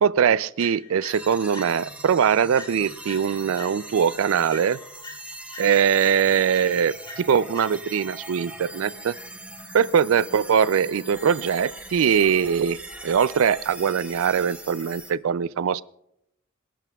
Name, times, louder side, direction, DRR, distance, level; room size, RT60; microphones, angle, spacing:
voice 1, 0.0-4.8 5.6-9.1 9.7-12.8 13.0-15.8, right 7 dB, 75° right, 17 dB, 0.4 m, -22 dB
sound 1, 0.6-2.1 2.5-4.1 4.5-8.1, left 3 dB, 20° left, 4.2 m, -44 dB
sound 2, 1.1-15.1, right 2 dB, 5° right, 1.0 m, -41 dB
27.5 x 12.0 x 2.3 m, 0.77 s
head